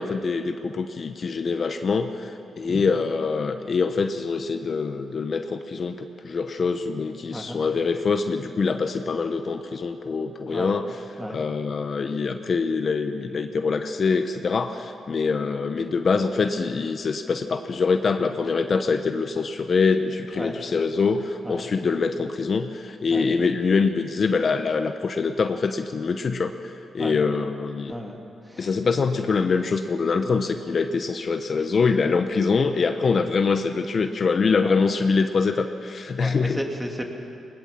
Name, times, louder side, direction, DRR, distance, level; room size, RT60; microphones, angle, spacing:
voice 1, 0.0-2.3 2.6-10.8 11.3-27.9 28.6-36.6, left 4 dB, 50° left, 7 dB, 1.0 m, -24 dB
voice 2, 7.3-7.6 10.5-10.8 11.2-11.4 20.3-20.6 21.4-21.7 23.1-23.3 27.0-27.1 27.9-28.2 28.4-28.9 33.0-33.3 34.6-34.8 36.2-37.1, equal, 10° right, 1 dB, 3.0 m, -34 dB
20.0 x 20.0 x 7.6 m, 2.7 s
cardioid pair, 75°, 0 cm